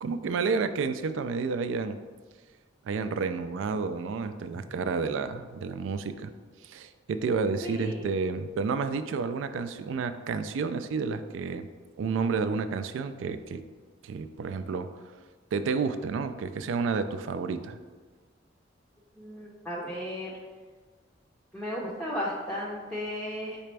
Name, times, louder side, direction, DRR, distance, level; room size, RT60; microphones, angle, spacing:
voice 1, 0.0-2.0 2.8-6.3 6.6-11.7 12.0-13.6 14.0-14.9 15.5-17.8, right 4 dB, 85° right, 11 dB, 0.3 m, -30 dB
voice 2, 7.6-8.1 19.2-20.3 21.5-23.6, left 1 dB, 5° left, -5 dB, 0.5 m, -35 dB
4.9 x 3.3 x 3.3 m, 1.4 s
head